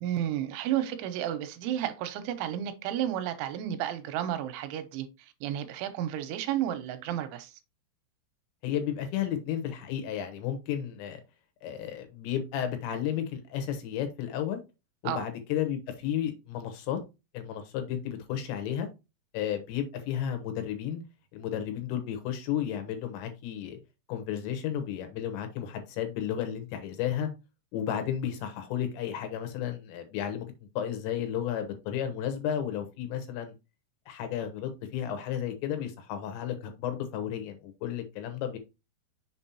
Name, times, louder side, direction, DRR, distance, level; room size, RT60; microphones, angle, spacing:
voice 1, 0.0-7.6 15.0-15.3, right 11 dB, 90° right, 3.1 m, -32 dB
voice 2, 8.6-11.2 11.6-14.6 15.0-17.0 17.3-18.9 19.3-21.0 21.3-23.8 24.1-27.3 27.7-30.5 30.8-33.5 34.1-38.6, left 9 dB, 75° left, 3.2 m, -33 dB
6.9 x 5.3 x 2.8 m
omnidirectional pair, 5.5 m